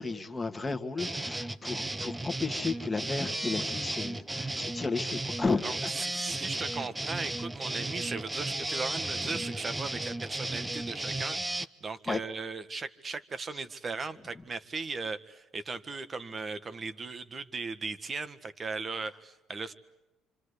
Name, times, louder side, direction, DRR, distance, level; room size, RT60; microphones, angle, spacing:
voice 1, 0.0-6.3 6.6-6.7 9.3-9.4 12.1-12.2, left 3 dB, 15° left, 5 dB, 2.1 m, -33 dB
sound 1, 1.0-11.7, right 2 dB, 15° right, 1.0 m, -35 dB
voice 2, 5.6-19.7, right 4 dB, 35° right, 12 dB, 1.7 m, -37 dB
27.5 x 26.0 x 8.4 m, 1.0 s
cardioid pair, 90°, 0 cm